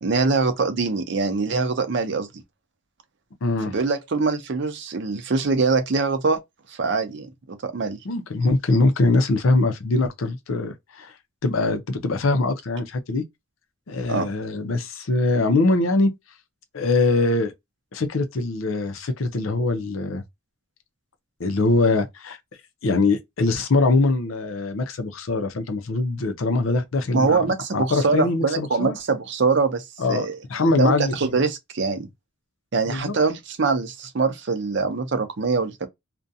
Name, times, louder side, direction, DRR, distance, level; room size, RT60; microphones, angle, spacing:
voice 1, 0.0-2.3 3.7-6.4 6.8-8.0 14.1-14.3 27.1-30.4 30.8-32.1 32.7-35.9, right 4 dB, 60° right, 0.6 m, -23 dB
voice 2, 3.4-3.7 8.0-11.1 11.4-13.2 13.9-16.1 16.7-17.5 17.9-20.2 21.4-22.4 22.8-27.4 27.7-28.9 30.0-31.4 32.9-33.1, left 3 dB, 80° left, 0.6 m, -22 dB
2.5 x 2.2 x 2.6 m
head